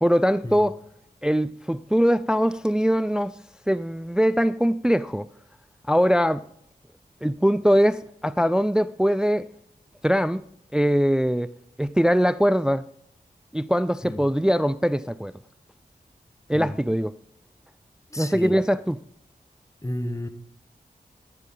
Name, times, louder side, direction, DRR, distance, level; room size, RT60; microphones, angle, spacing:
voice 1, 0.0-0.8 1.2-3.4 3.7-5.3 5.9-6.4 7.2-9.5 10.0-10.4 10.7-11.5 11.8-12.9 13.5-15.3 16.5-17.1 18.2-19.0, equal, 5° right, 0.3 m, -22 dB
voice 2, 18.1-18.5 19.8-20.3, left 1 dB, 20° left, 1.1 m, -31 dB
13.0 x 10.0 x 3.8 m
cardioid pair, 55°, 17 cm